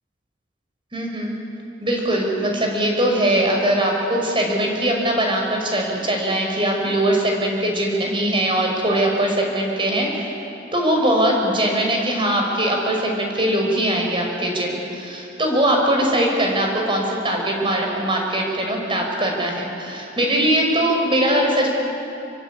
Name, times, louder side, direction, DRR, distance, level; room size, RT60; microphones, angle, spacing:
voice 1, 0.9-1.4 1.8-10.1 10.7-21.7, right 1 dB, 25° right, 0 dB, 5.7 m, -21 dB
28.0 x 23.5 x 8.5 m, 2.8 s
head